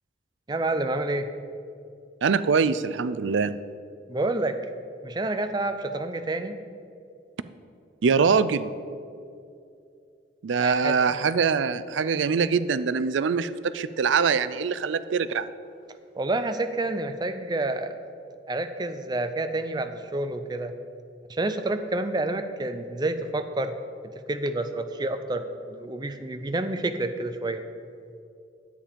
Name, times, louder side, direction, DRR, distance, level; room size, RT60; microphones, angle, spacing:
voice 1, 0.5-1.3 4.1-4.6 5.0-6.6 10.6-11.0 16.2-18.0 18.5-20.7 21.3-23.7 24.3-27.6, right 2 dB, 25° right, 8 dB, 0.5 m, -28 dB
voice 2, 2.2-3.6 8.0-8.7 10.4-15.5, right 5 dB, 85° right, 15 dB, 0.4 m, -23 dB
10.0 x 8.5 x 5.1 m, 2.5 s
head